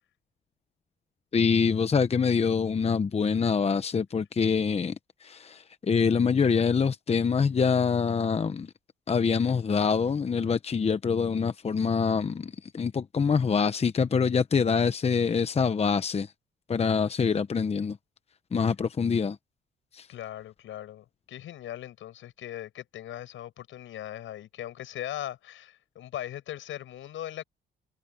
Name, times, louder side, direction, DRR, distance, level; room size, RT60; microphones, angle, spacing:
voice 1, 1.3-5.0 5.2-8.7 9.1-16.3 16.7-18.0 18.5-19.4 19.9-20.1, left 5 dB, 30° left, 0.9 m, -25 dB
voice 2, 20.1-27.4, left 12 dB, 80° left, 7.9 m, -39 dB
cardioid pair, 90°, 20 cm